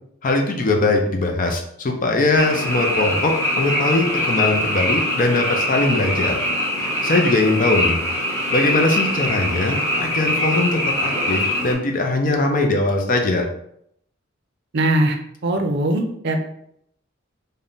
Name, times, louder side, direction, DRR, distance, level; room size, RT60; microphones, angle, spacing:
voice 1, 0.2-6.4 6.8-8.0 8.5-13.5, left 2 dB, 45° left, 3 dB, 0.5 m, -21 dB
Frog, 2.4-11.7, left 1 dB, 15° left, 0.9 m, -23 dB
voice 2, 14.7-16.4, right 1 dB, 55° right, 4 dB, 0.5 m, -21 dB
3.5 x 2.1 x 3.9 m, 0.72 s
head